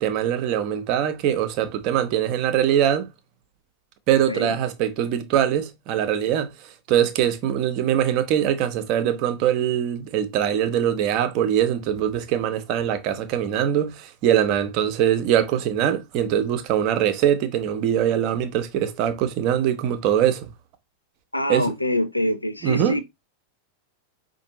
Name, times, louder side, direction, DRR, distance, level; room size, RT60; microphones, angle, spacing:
voice 1, 0.0-3.1 4.1-6.5 6.9-20.5 21.5-21.7 22.6-23.0, right 10 dB, 40° right, 0.7 m, -22 dB
voice 2, 21.3-23.0, left 1 dB, 85° left, 0.5 m, -25 dB
5.1 x 2.6 x 2.8 m
figure-of-eight pair, 90°, 0 cm